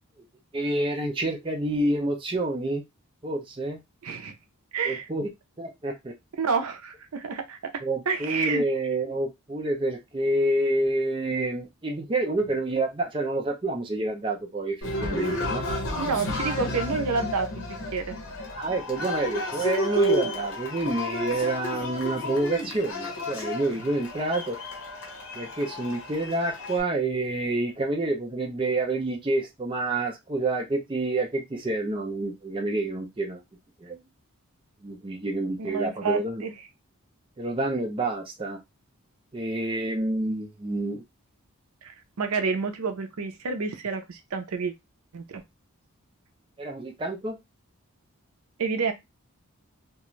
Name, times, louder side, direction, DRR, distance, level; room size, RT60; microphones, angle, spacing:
voice 1, 0.5-2.8 3.2-3.8 4.8-5.3 5.6-6.1 7.8-15.6 18.6-24.6 25.3-33.4 33.8-34.0 34.8-36.4 37.4-38.6 39.3-41.0 46.6-47.4, right 2 dB, 25° right, 0.5 m, -28 dB
voice 2, 4.0-4.3 4.7-5.1 6.4-7.7 8.1-8.6 15.3-15.4 16.0-18.2 35.6-36.5 41.8-44.7 45.1-45.4 48.6-48.9, right 5 dB, 80° right, 0.5 m, -29 dB
Cheering, 14.8-26.8, equal, 60° left, 1.0 m, -31 dB
2.4 x 2.3 x 3.0 m
head